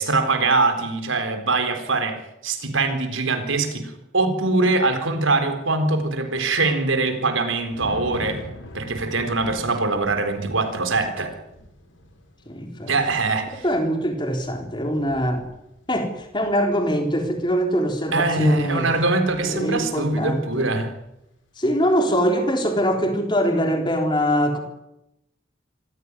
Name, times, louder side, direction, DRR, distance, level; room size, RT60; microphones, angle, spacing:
voice 1, 0.0-8.4 8.7-11.3 12.9-13.6 18.1-20.9, right 3 dB, 80° right, 7 dB, 4.0 m, -22 dB
Thunder, 5.9-20.5 20.8-21.1, equal, 75° left, 7.5 m, -44 dB
voice 2, 12.5-12.9 13.5-15.5 15.9-18.9 19.4-20.7 21.6-24.6, equal, 25° left, 4 dB, 3.8 m, -23 dB
25.5 x 16.0 x 9.8 m, 0.86 s
head